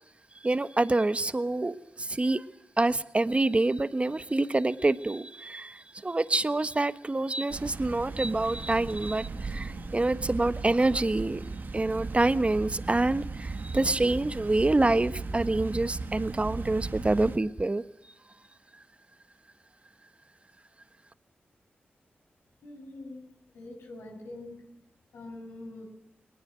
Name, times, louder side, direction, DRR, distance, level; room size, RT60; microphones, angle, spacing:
voice 1, 0.4-2.4 2.8-11.4 11.7-17.8, right 2 dB, 30° right, 13 dB, 1.3 m, -27 dB
sound 1, 7.5-17.4, right 3 dB, 55° right, 2.2 m, -37 dB
voice 2, 22.6-23.2 23.5-24.6 25.1-25.8, left 2 dB, 90° left, 1 dB, 7.8 m, -43 dB
20.0 x 19.5 x 7.6 m, 0.81 s
cardioid pair, 45°, 4 cm